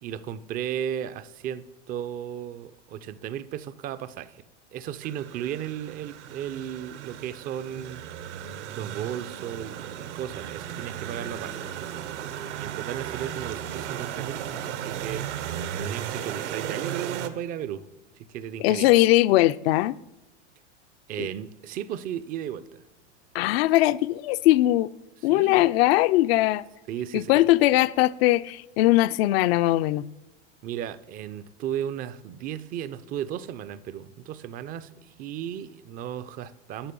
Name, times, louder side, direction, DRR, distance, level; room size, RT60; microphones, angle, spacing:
voice 1, 0.0-4.4 4.7-8.0 8.8-11.6 12.6-15.3 15.8-17.9 18.2-18.9 21.1-22.8 25.2-25.7 26.9-27.4 30.6-36.9, right 10 dB, 25° right, 0.4 m, -35 dB
sound 1, 5.0-17.3, right 10 dB, 75° right, 1.1 m, -35 dB
voice 2, 18.6-19.9 21.2-21.3 23.3-24.9 25.2-26.6 27.1-30.0, left 17 dB, 60° left, 0.5 m, -20 dB
11.0 x 6.7 x 5.2 m
hypercardioid pair, 125°, 36 cm